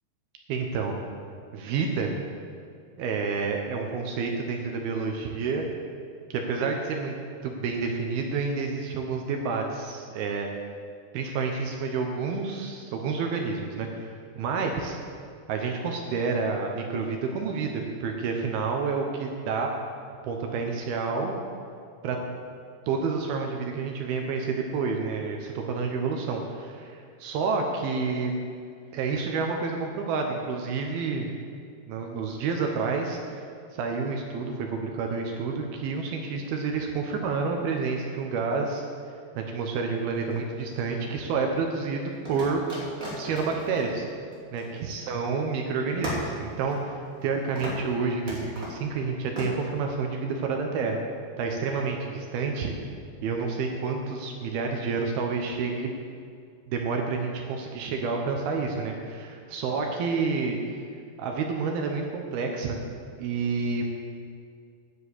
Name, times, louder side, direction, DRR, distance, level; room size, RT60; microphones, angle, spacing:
voice 1, 0.5-1.0 1.5-2.1 3.0-5.7 6.3-7.1 7.4-10.5 11.1-15.0 15.5-19.7 20.2-21.3 22.0-22.2 22.9-28.3 28.9-31.3 31.9-38.8 39.4-42.6 43.2-44.1 44.5-51.0 51.4-52.7 53.2-55.9 56.7-60.6 61.2-62.8 63.1-63.9, right 4 dB, 75° right, 2 dB, 2.6 m, -29 dB
sound 1, 40.2-41.1 42.3-45.2 45.5-45.6 46.0-47.3 47.6-47.9 48.3-48.8 49.4-49.5, equal, 25° right, 2.3 m, -37 dB
10.5 x 7.3 x 8.3 m, 2.3 s
omnidirectional pair, 4.9 m